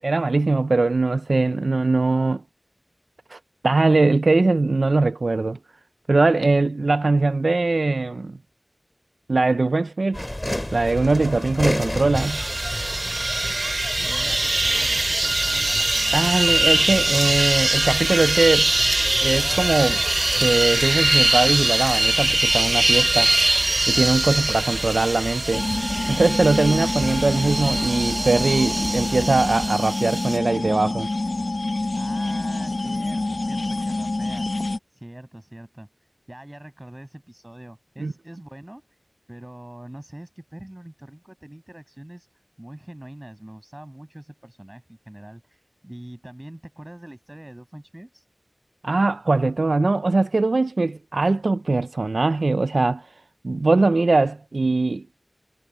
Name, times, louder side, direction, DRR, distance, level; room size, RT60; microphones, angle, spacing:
voice 1, 0.0-2.4 3.3-3.4 3.6-5.6 6.1-8.4 9.3-10.2 10.7-12.4 16.1-18.7 19.2-20.0 20.3-23.3 23.9-25.7 26.1-31.1 38.0-38.1 48.8-53.1 53.4-55.0, right 3 dB, 80° right, 0.3 m, -21 dB
sound 1, 10.1-29.7, left 1 dB, 20° left, 2.4 m, -32 dB
sound 2, 12.1-30.4, right 2 dB, 60° right, 0.9 m, -22 dB
voice 2, 14.0-16.3 31.9-35.9 36.3-39.0 39.3-42.3 42.6-48.3, right 1 dB, 20° right, 6.0 m, -43 dB
sound 3, 25.5-34.8, left 2 dB, 65° left, 0.9 m, -27 dB
wide cardioid pair, 50°, 0 cm